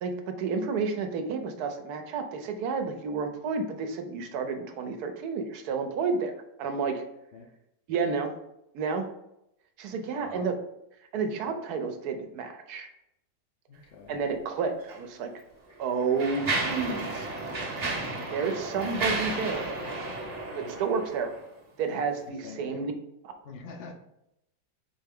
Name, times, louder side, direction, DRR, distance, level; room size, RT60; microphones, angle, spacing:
voice 1, 0.0-6.3 6.6-7.0 7.9-8.3 8.7-9.1 9.8-10.6 11.1-12.9 14.1-15.3 15.8-17.3 18.3-19.8 20.5-21.3 21.8-22.9 23.2-23.3, right 5 dB, 70° right, 6 dB, 1.1 m, -30 dB
voice 2, 9.9-10.6 13.7-14.2 20.6-20.8 22.3-22.9 23.4-23.9, left 4 dB, 80° left, 2 dB, 0.5 m, -45 dB
Mechanisms, 14.8-15.0 15.7-21.5, right 3 dB, 40° right, 0.6 m, -33 dB
4.6 x 3.3 x 3.5 m, 0.82 s
omnidirectional pair, 1.8 m